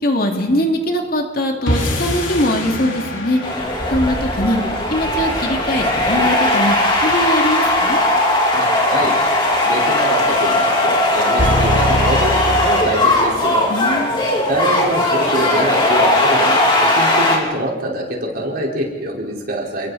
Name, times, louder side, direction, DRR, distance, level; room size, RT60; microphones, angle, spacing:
voice 1, 0.0-3.4 3.9-4.6 4.9-6.8 7.0-8.0 13.7-14.1, left 1 dB, 50° left, 2 dB, 2.7 m, -21 dB
sound 1, 1.7-8.0, left 1 dB, 90° left, 4.4 m, -28 dB
sound 2, 3.4-17.4, left 1 dB, 25° left, 3.4 m, -17 dB
voice 2, 8.5-13.6 14.5-19.9, right 1 dB, 50° right, -2 dB, 4.6 m, -24 dB
sound 3, 11.4-13.6 13.9-14.0, equal, 70° right, 1.3 m, -22 dB
29.0 x 22.0 x 4.2 m, 1.2 s
head